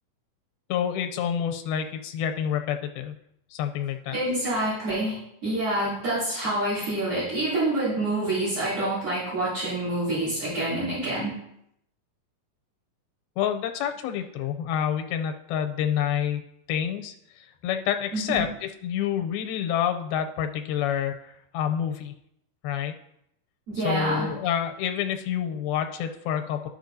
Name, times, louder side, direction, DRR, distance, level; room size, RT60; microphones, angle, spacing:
voice 1, 0.7-3.1 3.5-4.1 13.4-16.4 16.7-22.1 22.6-23.0 23.8-26.7, left 9 dB, 90° left, 5 dB, 2.6 m, -28 dB
voice 2, 4.1-5.2 5.4-11.3 18.1-18.4 23.7-24.3, right 1 dB, 40° right, -11 dB, 3.7 m, -27 dB
13.0 x 5.4 x 2.7 m, 0.77 s
omnidirectional pair, 4.2 m